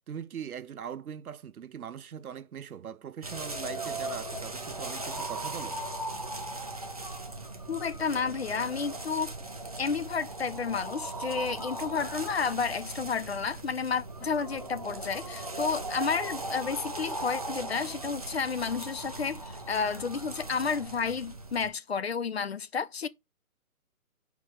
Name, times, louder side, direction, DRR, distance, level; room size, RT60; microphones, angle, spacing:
voice 1, 0.1-5.8, right 8 dB, 80° right, 0.8 m, -41 dB
sound 1, 3.2-21.7, right 2 dB, 25° right, 0.5 m, -38 dB
voice 2, 7.7-9.3 9.8-23.1, left 5 dB, 45° left, 0.6 m, -31 dB
5.2 x 4.7 x 6.2 m
hypercardioid pair, 165°, 44 cm